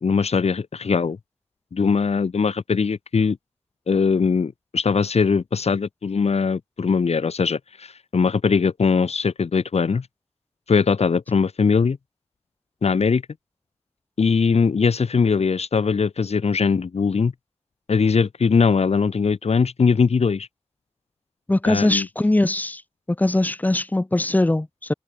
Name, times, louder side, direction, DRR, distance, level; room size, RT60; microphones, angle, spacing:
voice 1, 0.0-1.2 1.7-3.4 3.9-10.1 10.7-12.0 12.8-13.2 14.2-17.3 17.9-20.5 21.6-22.1, left 5 dB, 75° left, 0.8 m, -20 dB
voice 2, 21.5-22.8 23.2-24.9, left 2 dB, 15° left, 0.4 m, -21 dB
wide cardioid pair, 50°, 11 cm